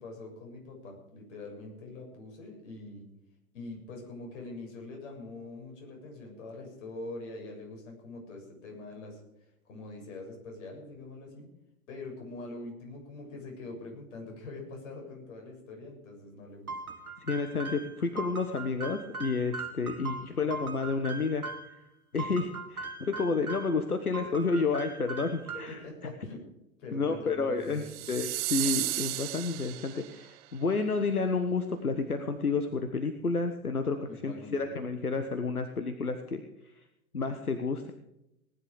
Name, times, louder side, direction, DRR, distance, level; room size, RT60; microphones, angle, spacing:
voice 1, 0.0-3.1 3.5-11.5 11.9-16.9 25.5-26.4 26.8-28.1 34.1-34.7, left 2 dB, 55° left, 0 dB, 7.0 m, -44 dB
sound 1, 16.7-21.8 22.2-23.8 24.1-25.9, right 3 dB, 80° right, 2.2 m, -40 dB
voice 2, 17.3-21.4 22.1-25.8 26.9-36.4 37.1-37.9, left 4 dB, 85° left, 7 dB, 1.4 m, -30 dB
sound 2, 27.8-30.3, right 18 dB, 30° right, 0.5 m, -33 dB
19.0 x 10.5 x 5.0 m, 0.85 s
figure-of-eight pair, 100°, 43 cm